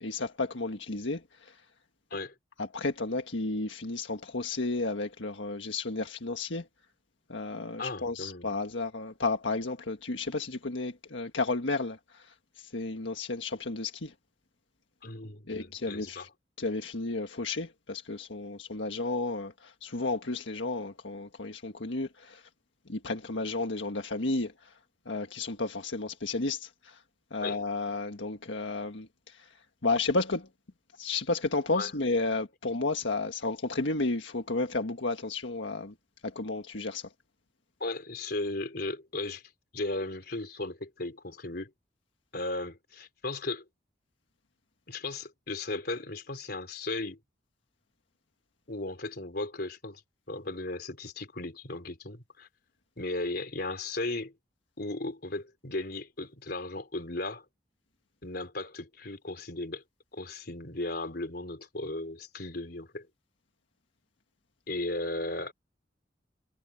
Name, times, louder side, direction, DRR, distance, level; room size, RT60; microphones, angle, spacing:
voice 1, 0.0-1.6 2.6-6.7 7.3-14.1 15.5-16.3 16.6-22.5 22.9-24.8 25.0-27.0 27.3-29.5 29.8-30.5 31.0-35.9 36.2-37.1, left 3 dB, 85° left, 1.6 m, -32 dB
voice 2, 7.8-8.5 15.0-16.3 27.4-27.6 31.7-31.9 37.8-39.4 39.7-41.7 42.3-43.6 44.9-47.2 48.7-50.0 50.3-52.5 53.0-54.3 54.8-57.5 58.2-59.8 60.1-63.1 64.7-65.5, left 2 dB, 55° left, 3.9 m, -36 dB
head